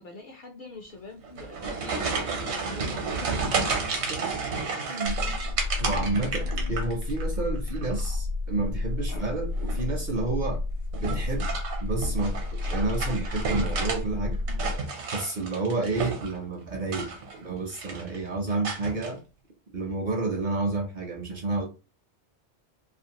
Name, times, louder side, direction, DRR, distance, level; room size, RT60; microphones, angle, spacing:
voice 1, 0.0-4.1 9.1-9.3, left 3 dB, 60° left, 0.6 m, -43 dB
sound 1, 1.2-7.3 7.6-8.1 9.5-9.9 10.9-14.0 14.3-16.4 16.8-17.4 17.7-18.2 18.6-19.1, right 4 dB, 75° right, 1.0 m, -32 dB
voice 2, 4.9-5.2 5.8-10.6 11.0-11.5 11.8-14.4 15.1-19.2 19.7-21.7, right 3 dB, 55° right, 0.6 m, -30 dB
sound 2, 5.0-14.8, left 2 dB, 85° left, 0.9 m, -31 dB
2.5 x 2.4 x 2.8 m
omnidirectional pair, 1.2 m